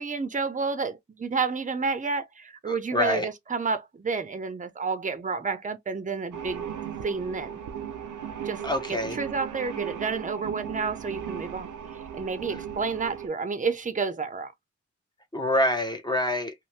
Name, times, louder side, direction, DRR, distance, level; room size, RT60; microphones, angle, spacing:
voice 1, 0.0-6.7 7.0-7.6 8.4-8.6 8.9-11.7 12.1-14.5, right 4 dB, 25° right, 0.7 m, -30 dB
voice 2, 2.7-3.3 8.6-9.2 15.3-16.5, left 1 dB, 15° left, 0.9 m, -26 dB
sound 1, 6.3-13.3, right 8 dB, 80° right, 0.6 m, -37 dB
2.7 x 2.2 x 3.2 m
cardioid pair, 55°, 31 cm